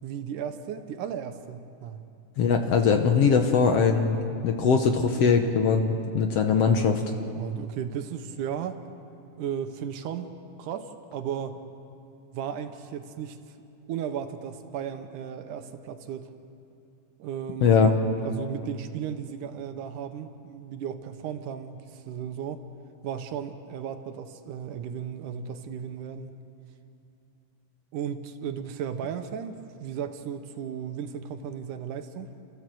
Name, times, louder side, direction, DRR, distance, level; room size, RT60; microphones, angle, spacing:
voice 1, 0.0-2.0 7.3-8.8 9.4-10.3 10.6-11.6 12.3-13.4 13.9-16.3 17.2-17.8 18.2-22.6 23.0-26.3 27.9-32.3, right 8 dB, 75° right, 8 dB, 2.4 m, -35 dB
voice 2, 2.4-7.0 17.6-17.9, left 5 dB, 65° left, 5 dB, 1.7 m, -21 dB
30.0 x 14.0 x 7.7 m, 2.6 s
omnidirectional pair, 3.7 m